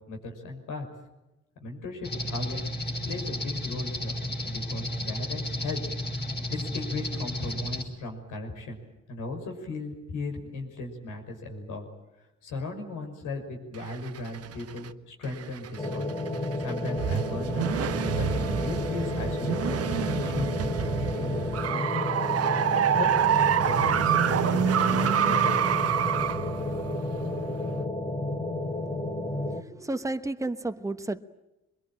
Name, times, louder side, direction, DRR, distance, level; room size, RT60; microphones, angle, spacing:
voice 1, 0.1-0.9 1.6-4.2 4.4-5.8 6.1-6.2 6.5-8.8 9.1-11.9 12.4-16.1 16.6-17.7 18.1-22.1 22.4-25.6, left 3 dB, 90° left, 4 dB, 5.9 m, -37 dB
sound 1, 2.0-7.8, left 1 dB, 35° left, 5.1 m, -33 dB
sound 2, 13.7-14.9 15.3-27.9, right 9 dB, 50° right, 1.1 m, -27 dB
sound 3, 15.8-29.6, left 2 dB, 15° left, 1.8 m, -31 dB
voice 2, 29.4-31.2, right 2 dB, 10° right, 10 dB, 1.1 m, -32 dB
24.5 x 22.0 x 8.9 m, 0.98 s
cardioid pair, 90°, 30 cm